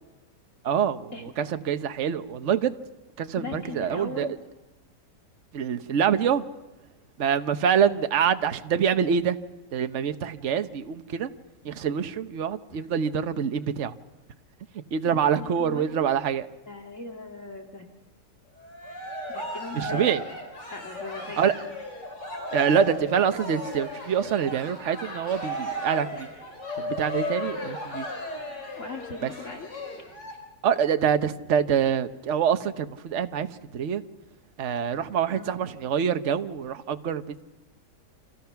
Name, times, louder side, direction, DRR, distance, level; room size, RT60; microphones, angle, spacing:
voice 1, 0.6-1.1 1.4-2.7 3.2-4.3 5.5-6.4 7.2-9.4 9.7-11.3 11.6-13.9 14.9-16.5 19.7-20.2 21.4-21.5 22.5-26.3 26.8-28.1 29.2-29.3 30.6-33.5 33.7-34.0 34.6-37.4, right 8 dB, 50° right, 1.2 m, -25 dB
voice 2, 3.4-4.4 12.7-12.8 15.1-15.9 16.7-17.9 19.3-20.2 20.7-21.5 28.8-29.7 35.3-35.5, left 3 dB, 45° left, 2.6 m, -39 dB
Cheering, 18.6-30.3, left 1 dB, 85° left, 5.3 m, -35 dB
29.5 x 27.0 x 5.9 m
omnidirectional pair, 1.8 m